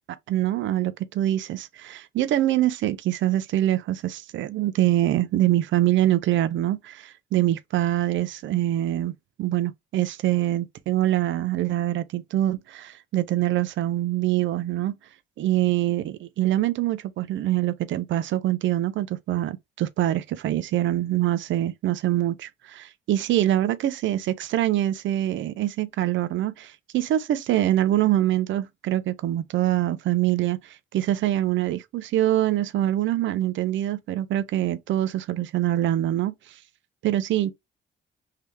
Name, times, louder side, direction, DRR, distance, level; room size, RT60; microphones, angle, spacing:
voice 1, 0.3-9.1 9.4-14.9 15.4-30.6 30.9-36.3 37.0-37.5, right 13 dB, 70° right, 0.5 m, -24 dB
3.5 x 2.8 x 3.2 m
cardioid pair, 90°, 20 cm